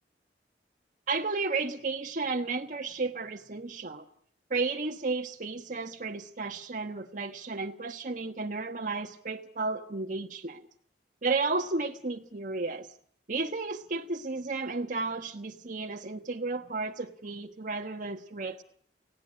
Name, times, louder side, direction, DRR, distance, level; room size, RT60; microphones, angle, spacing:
voice 1, 1.1-4.0 4.5-10.7 11.2-12.9 13.3-18.6, right 3 dB, 50° right, 3 dB, 1.3 m, -33 dB
29.5 x 17.5 x 9.8 m, 0.64 s
head